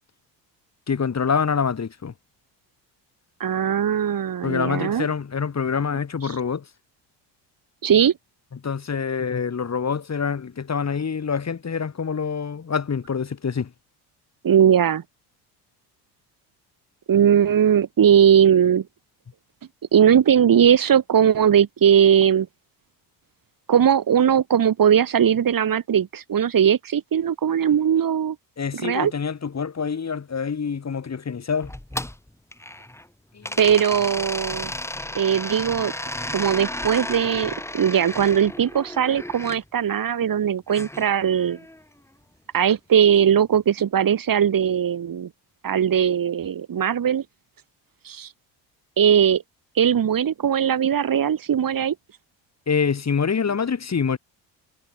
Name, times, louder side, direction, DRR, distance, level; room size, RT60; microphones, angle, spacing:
voice 1, 0.9-2.1 4.4-6.6 8.6-13.7 28.6-31.7 33.3-33.6 52.7-54.2, left 6 dB, 35° left, 6.4 m, -26 dB
voice 2, 3.4-5.1 6.2-6.3 7.8-8.1 14.4-15.0 17.1-18.8 19.9-22.5 23.7-28.4 28.7-29.1 33.6-34.7 35.1-35.9 36.3-41.6 42.5-45.3 45.6-47.2 48.0-48.3 49.0-49.4 49.8-51.9, right 8 dB, 45° right, 4.7 m, -19 dB
sound 1, 31.6-33.0 33.4-39.6 40.7-41.8, left 1 dB, 5° left, 3.1 m, -33 dB
supercardioid pair, 80°, 45 cm